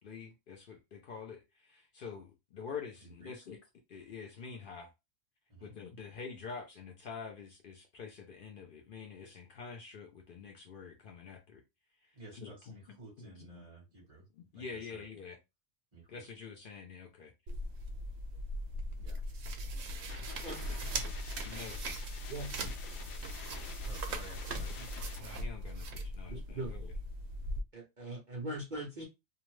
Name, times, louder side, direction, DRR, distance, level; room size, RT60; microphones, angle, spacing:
voice 1, 0.0-3.6 3.9-4.9 5.6-11.6 12.0-12.7 13.2-13.7 14.3-15.4 16.1-17.3 21.4-21.8 25.0-26.9, left 5 dB, 65° left, 0.5 m, -47 dB
voice 2, 3.0-3.3 5.5-5.7 12.1-14.3 14.5-15.1 15.9-16.2 19.0-19.2 23.9-24.9, right 2 dB, 25° right, 1.2 m, -53 dB
sound 1, 17.5-27.6, right 1 dB, 75° right, 0.9 m, -39 dB
sound 2, 20.1-25.2, left 4 dB, 80° left, 1.0 m, -48 dB
voice 3, 20.4-20.8 22.3-22.7 26.3-26.7 27.7-29.1, right 1 dB, 45° right, 0.7 m, -41 dB
2.7 x 2.1 x 3.0 m
omnidirectional pair, 1.4 m